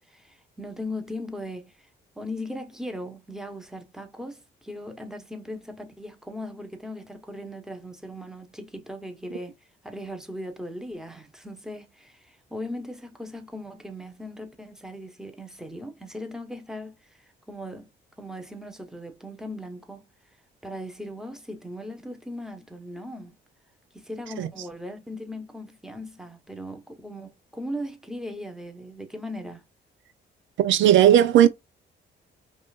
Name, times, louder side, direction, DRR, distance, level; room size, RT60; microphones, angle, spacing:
voice 1, 0.0-1.9 2.2-9.6 9.8-17.9 18.2-20.1 20.6-23.4 23.9-29.6, left 1 dB, ahead, 1.1 m, -38 dB
voice 2, 30.6-31.5, right 11 dB, 75° right, 0.5 m, -16 dB
5.3 x 2.6 x 2.4 m
cardioid pair, 90°, 20 cm